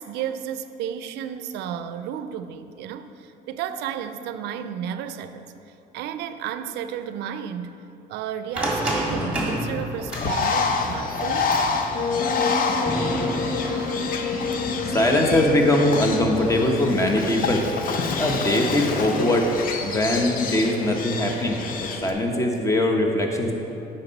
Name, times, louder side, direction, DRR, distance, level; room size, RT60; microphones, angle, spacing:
voice 1, 0.0-5.5 5.9-11.5 11.9-12.0, right 9 dB, 85° right, 11 dB, 0.4 m, -33 dB
sound 1, 8.5-16.6, right 1 dB, 5° right, 1.7 m, -32 dB
Bird, 10.1-22.1, left 4 dB, 55° left, 0.6 m, -28 dB
Wind instrument woodwind instrument, 11.9-17.0, left 4 dB, 90° left, 0.8 m, -29 dB
voice 2, 14.5-17.7 18.2-19.5 19.8-23.5, left 1 dB, 20° left, 2 dB, 0.9 m, -22 dB
9.0 x 5.5 x 4.0 m, 2.9 s
cardioid pair, 110°, 17 cm